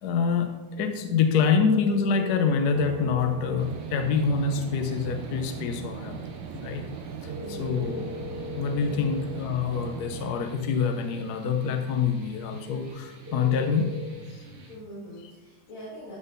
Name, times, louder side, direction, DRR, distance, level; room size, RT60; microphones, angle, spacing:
voice 1, 0.0-6.2 6.5-6.9 7.2-8.0 8.6-13.9, left 6 dB, 65° left, 6 dB, 1.1 m, -26 dB
sound 1, 1.3-3.2 7.2-9.2 13.2-14.1, left 4 dB, 10° right, 1.0 m, -39 dB
sound 2, 2.7-10.4, right 7 dB, 75° right, 1.3 m, -38 dB
sound 3, 3.6-14.7, right 2 dB, 40° right, 1.4 m, -48 dB
voice 2, 7.3-8.0 8.8-9.0 14.7-16.2, right 1 dB, 85° left, -9 dB, 3.1 m, -43 dB
12.5 x 4.4 x 5.2 m, 1.2 s
omnidirectional pair, 2.2 m